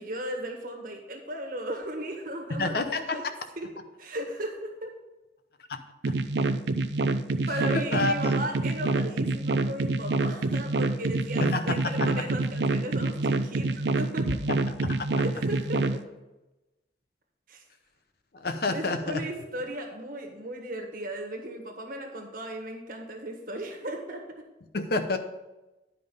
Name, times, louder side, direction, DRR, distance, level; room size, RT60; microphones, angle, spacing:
voice 1, 0.0-3.2 3.6-3.7 4.0-4.9 7.3-14.4 15.2-16.0 17.5-17.6 18.7-24.2, right 1 dB, 50° right, 2 dB, 1.6 m, -36 dB
voice 2, 2.6-3.3 5.7-5.8 7.7-8.3 11.4-12.1 14.5-14.6 14.8-15.1 18.3-19.2 24.7-25.2, left 3 dB, 60° left, 8 dB, 0.7 m, -29 dB
sound 1, 6.0-16.0, right 3 dB, 75° right, 0.5 m, -26 dB
10.0 x 5.5 x 5.4 m, 1.0 s
head